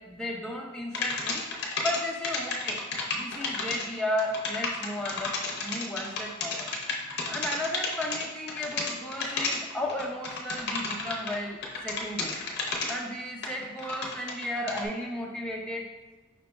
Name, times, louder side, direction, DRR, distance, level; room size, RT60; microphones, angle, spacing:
voice 1, 0.0-1.4 1.8-2.8 3.1-6.7 7.3-12.4 12.9-15.9, left 1 dB, 5° left, -1 dB, 0.4 m, -34 dB
sound 1, 0.9-2.0 2.2-11.4 11.6-12.9 13.4-14.9, left 4 dB, 50° left, 0.6 m, -31 dB
5.0 x 3.9 x 2.3 m, 1.2 s
head